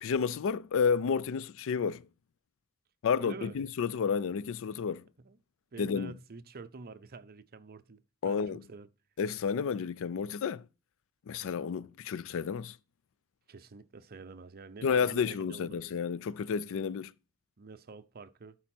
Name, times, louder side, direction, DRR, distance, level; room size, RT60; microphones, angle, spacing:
voice 1, 0.0-2.1 3.0-5.0 5.8-6.1 8.2-8.6 9.2-10.7 11.3-12.8 14.8-17.1, left 6 dB, 65° left, 0.4 m, -31 dB
voice 2, 3.2-3.6 5.2-5.4 5.7-8.9 13.5-15.9 17.6-18.6, right 4 dB, 45° right, 0.7 m, -47 dB
11.5 x 4.1 x 4.4 m
head